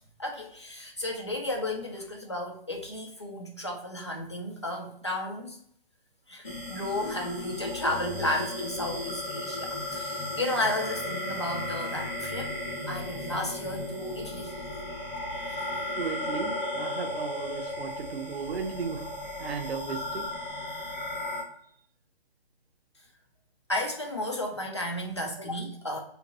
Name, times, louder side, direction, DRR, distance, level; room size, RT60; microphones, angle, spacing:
voice 1, 0.2-5.6 6.3-6.4 6.7-12.5 12.9-14.5 23.7-26.0, left 1 dB, 30° left, 0 dB, 0.4 m, -33 dB
sound 1, 6.4-21.4, left 1 dB, 10° right, 0.8 m, -35 dB
voice 2, 16.0-19.1 19.4-20.2, right 5 dB, 85° right, 5 dB, 0.8 m, -35 dB
3.5 x 2.9 x 2.6 m, 0.66 s
hypercardioid pair, 175°, 30 cm